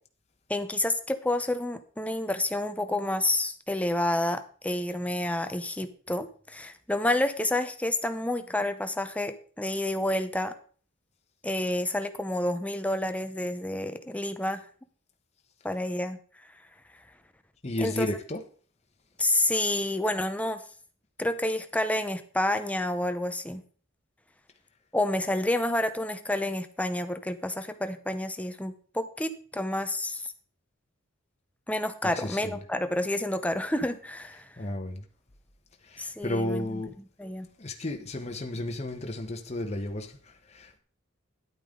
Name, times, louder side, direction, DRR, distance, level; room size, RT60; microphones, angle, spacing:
voice 1, 0.5-10.5 11.4-14.6 15.6-16.5 17.8-18.1 19.2-20.6 21.2-23.6 24.9-30.3 31.7-34.6 36.0-36.8 37.2-37.5, left 1 dB, 5° left, 0.7 m, -29 dB
voice 2, 17.6-18.4 32.1-32.5 34.6-35.0 35.8-36.9 37.6-40.8, left 1 dB, 35° left, 1.1 m, -33 dB
10.5 x 8.8 x 3.8 m
head